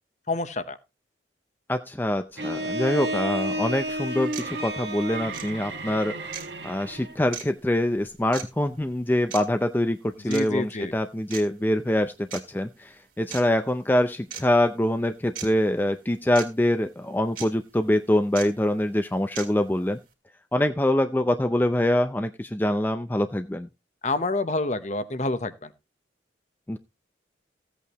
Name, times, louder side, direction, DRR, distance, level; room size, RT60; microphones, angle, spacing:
voice 1, 0.3-0.8 10.3-10.9 24.0-25.7, left 2 dB, 40° left, 0.9 m, -27 dB
voice 2, 1.7-6.1 6.6-20.0 20.5-23.7 26.7-26.8, left 1 dB, 10° left, 0.5 m, -24 dB
Bowed string instrument, 2.4-7.2, right 1 dB, 65° right, 1.7 m, -31 dB
sound 1, 3.6-3.7 4.3-4.5 5.3-5.5 6.3-6.5 7.3-7.5 8.3-8.5 9.3-9.4 10.3-10.5 11.3-11.4 12.3-12.4 13.3-13.4 14.3-14.4 15.4-15.5 16.4-16.5 17.4-17.5 18.4-18.5 19.4-19.5, right 8 dB, 50° right, 2.5 m, -36 dB
15.5 x 8.4 x 3.0 m
head